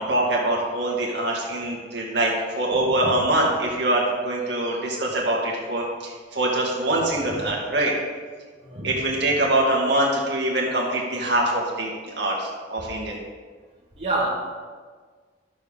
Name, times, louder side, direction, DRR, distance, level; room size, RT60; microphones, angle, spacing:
voice 1, 0.0-7.9 8.8-13.2, right 1 dB, 65° right, -2 dB, 2.2 m, -24 dB
voice 2, 14.0-14.3, right 2 dB, 35° right, -5 dB, 1.5 m, -26 dB
12.5 x 6.9 x 3.7 m, 1.5 s
head